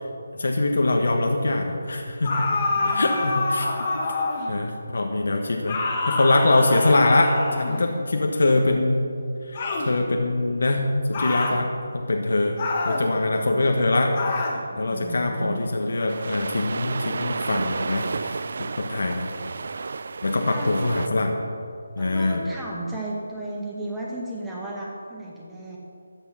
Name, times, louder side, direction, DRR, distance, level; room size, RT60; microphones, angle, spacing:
voice 1, 0.3-2.5 2.8-3.7 4.5-5.8 6.1-9.0 9.5-12.6 12.8-14.1 14.8-19.3 20.2-21.4 22.0-22.4, left 2 dB, 70° left, 2 dB, 1.4 m, -23 dB
sound 1, 2.2-4.6 5.7-7.9 9.5-9.9 11.1-11.6 12.6-13.1 14.2-14.6, left 3 dB, 25° left, 1.4 m, -27 dB
voice 2, 2.7-3.2 14.7-15.8 20.3-20.7 22.0-25.8, right 1 dB, 5° right, -5 dB, 1.5 m, -35 dB
sound 2, 16.1-21.1, right 4 dB, 50° right, 0.3 m, -32 dB
13.5 x 8.9 x 5.8 m, 2.5 s
figure-of-eight pair, 175°, 0 cm